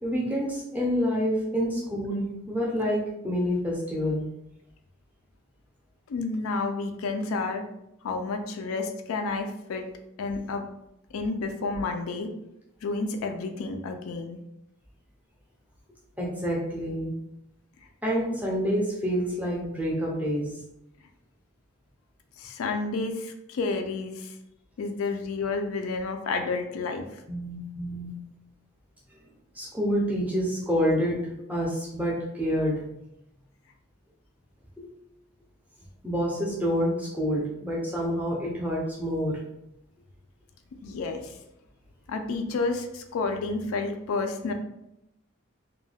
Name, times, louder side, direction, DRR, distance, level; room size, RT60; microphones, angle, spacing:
voice 1, 0.0-4.2 16.2-17.1 18.0-20.5 27.3-28.2 29.6-32.8 34.8-34.9 36.0-39.4, equal, 5° right, -3 dB, 0.5 m, -28 dB
voice 2, 6.1-7.6 8.0-9.9 10.2-10.7 11.1-12.3 12.8-14.4 22.4-24.3 24.8-27.2 40.8-41.4 42.1-44.5, left 3 dB, 80° left, 6 dB, 0.3 m, -30 dB
2.2 x 2.1 x 3.3 m, 0.85 s
head